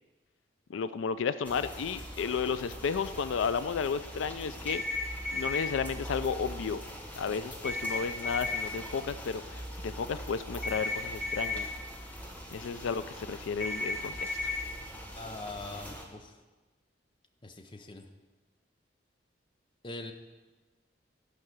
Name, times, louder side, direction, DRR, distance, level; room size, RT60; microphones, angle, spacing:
voice 1, 0.7-4.8 5.3-6.8 7.2-11.7 12.5-14.5, left 6 dB, 85° left, 13 dB, 0.4 m, -33 dB
sound 1, 1.4-16.0, equal, 10° left, 1.1 m, -43 dB
sound 2, 4.7-5.7 7.6-8.6 10.6-11.6 13.6-14.6, left 3 dB, 55° left, 3.7 m, -33 dB
voice 2, 15.1-16.4 17.4-18.1 19.8-20.1, left 2 dB, 25° left, 5 dB, 0.7 m, -42 dB
12.0 x 4.8 x 7.6 m, 1.2 s
head